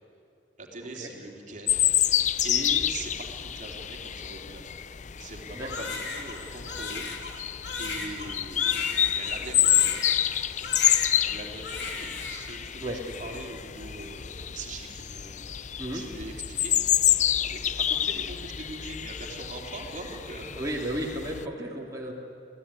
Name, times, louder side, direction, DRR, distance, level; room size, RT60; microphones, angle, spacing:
voice 1, 0.6-1.8 2.4-4.6 5.2-7.4 7.8-10.2 11.2-12.9 13.2-20.5, right 2 dB, 45° right, 0 dB, 3.2 m, -42 dB
sound 1, 1.7-21.4, left 11 dB, 45° left, 0.5 m, -28 dB
voice 2, 5.5-5.9 12.8-13.0 15.8-16.0 20.6-22.1, right 1 dB, 20° right, -3 dB, 2.8 m, -33 dB
Crying sobbing, 5.7-10.4 10.6-11.4 11.6-12.6, left 4 dB, 75° left, 3.2 m, -36 dB
26.0 x 16.5 x 9.8 m, 2.6 s
head